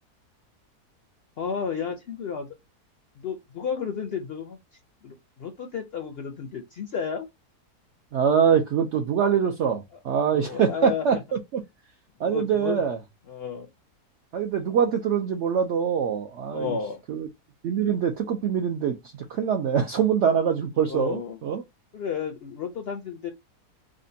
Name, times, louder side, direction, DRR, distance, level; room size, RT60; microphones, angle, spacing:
voice 1, 1.4-2.5 3.2-7.3 10.3-11.2 12.2-12.8 13.3-13.7 16.5-17.0 20.8-21.4 21.9-23.3, left 6 dB, 65° left, 0.6 m, -32 dB
voice 2, 8.1-11.6 12.2-13.0 14.3-16.8 17.1-17.3 17.6-21.6, right 7 dB, 65° right, 0.7 m, -24 dB
5.0 x 2.2 x 2.6 m
omnidirectional pair, 1.7 m